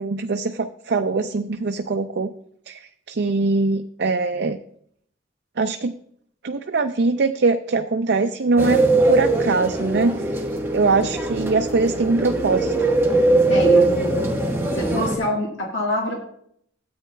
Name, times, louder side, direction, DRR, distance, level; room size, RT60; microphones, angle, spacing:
voice 1, 0.0-2.3 2.7-4.6 5.6-5.9 6.4-10.3 10.7-12.7, right 3 dB, 60° right, 7 dB, 0.5 m, -22 dB
sound 1, 8.6-15.2, right 2 dB, 10° right, 1.2 m, -21 dB
voice 2, 13.5-14.3 14.7-16.2, equal, 80° left, -1 dB, 1.6 m, -25 dB
13.0 x 8.6 x 2.2 m, 0.66 s
head